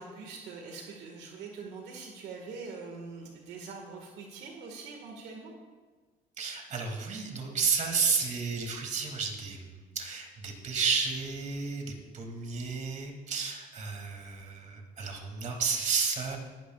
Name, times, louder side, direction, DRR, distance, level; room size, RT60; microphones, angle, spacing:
voice 1, 0.0-5.5, right 4 dB, 85° right, 1 dB, 1.9 m, -43 dB
voice 2, 6.4-16.4, right 5 dB, 45° right, 1 dB, 2.6 m, -32 dB
18.5 x 12.5 x 2.5 m, 1.4 s
cardioid pair, 110°, 17 cm